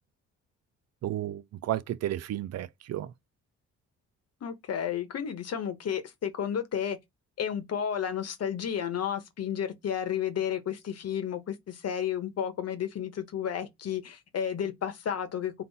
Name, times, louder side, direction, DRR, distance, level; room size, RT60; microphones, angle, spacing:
voice 1, 1.0-3.1, right 13 dB, 55° right, 0.5 m, -32 dB
voice 2, 4.4-7.0 7.4-15.6, left 8 dB, 55° left, 1.1 m, -32 dB
3.8 x 2.7 x 4.0 m
cardioid pair, 90°, 30 cm